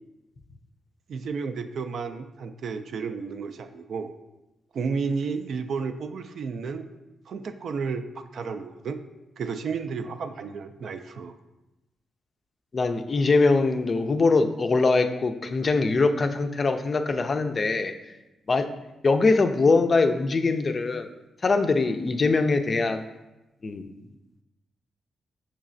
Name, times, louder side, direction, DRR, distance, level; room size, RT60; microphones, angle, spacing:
voice 1, 1.1-4.1 4.7-6.8 7.3-9.0 9.4-11.4, right 5 dB, 70° right, 8 dB, 0.3 m, -32 dB
voice 2, 12.7-17.9 18.5-18.7 19.0-21.1 21.4-23.0 23.6-24.0, left 3 dB, 45° left, 7 dB, 0.4 m, -22 dB
5.7 x 3.1 x 2.5 m, 1.0 s
supercardioid pair, 45°, 0 cm